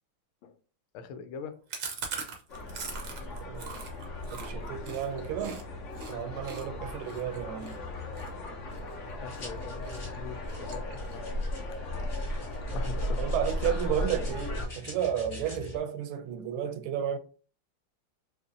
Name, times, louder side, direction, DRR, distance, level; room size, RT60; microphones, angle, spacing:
voice 1, 0.9-1.6 9.2-11.3 12.7-13.2, left 6 dB, 85° left, 1.5 m, -42 dB
Chewing mastication, 1.7-5.6 5.9-6.1 6.4-9.4 9.8-10.2 10.4-11.3 11.6-11.7 12.0-12.1 12.4-13.0, right 5 dB, 65° right, 0.8 m, -41 dB
sound 1, 2.5-14.7, left 1 dB, 65° left, 0.7 m, -36 dB
voice 2, 3.4-3.8 4.3-5.6 6.1-7.8 13.2-17.2, right 9 dB, 85° right, 1.5 m, -32 dB
sound 2, 8.7-15.8, left 3 dB, 40° left, 2.3 m, -46 dB
4.9 x 2.5 x 2.6 m
omnidirectional pair, 2.3 m